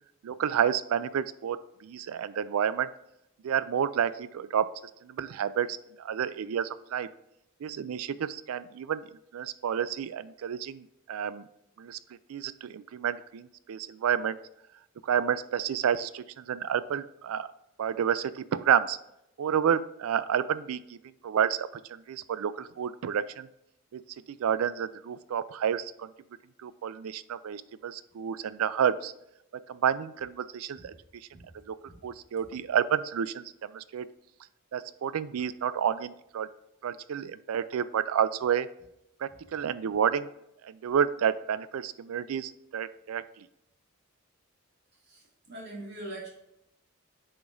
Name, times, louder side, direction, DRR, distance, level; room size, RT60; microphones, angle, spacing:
voice 1, 0.2-2.9 3.4-4.7 5.0-7.1 7.6-9.0 9.3-11.5 11.8-12.0 12.3-14.4 15.0-17.5 17.8-19.0 19.4-21.0 21.2-23.5 23.9-24.0 24.3-26.1 26.6-29.1 29.7-30.9 31.7-31.8 32.0-34.1 34.7-36.5 36.8-38.7 39.2-40.3 40.6-43.4, right 8 dB, 80° right, 16 dB, 0.3 m, -30 dB
voice 2, 45.0-46.3, right 1 dB, 50° right, -4 dB, 2.3 m, -42 dB
8.4 x 5.0 x 2.6 m, 0.81 s
head